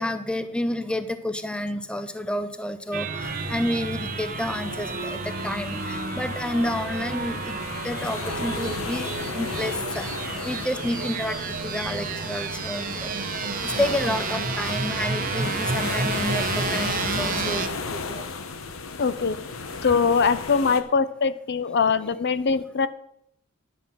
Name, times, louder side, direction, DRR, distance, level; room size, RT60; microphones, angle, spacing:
voice 1, 0.0-7.6 7.8-10.1 10.4-13.2 13.6-18.2, left 1 dB, 5° left, 10 dB, 0.5 m, -30 dB
sound 1, 2.9-17.7, right 4 dB, 40° right, 0.7 m, -31 dB
sound 2, 3.2-20.8, left 4 dB, 75° left, 0.9 m, -35 dB
voice 2, 19.0-19.4 19.8-22.9, left 5 dB, 55° left, 14 dB, 0.5 m, -22 dB
10.5 x 5.5 x 7.4 m, 0.75 s
head